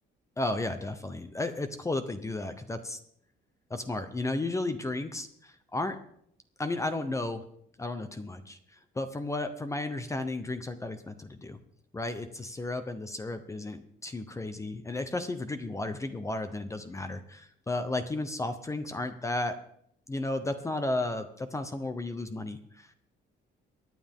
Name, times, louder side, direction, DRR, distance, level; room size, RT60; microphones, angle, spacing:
voice 1, 0.4-3.0 3.7-6.0 6.6-7.4 7.8-11.6 11.9-19.6 20.1-22.9, left 2 dB, 15° left, 9 dB, 0.8 m, -33 dB
23.0 x 9.8 x 3.7 m, 0.66 s
cardioid pair, 160°, 20 cm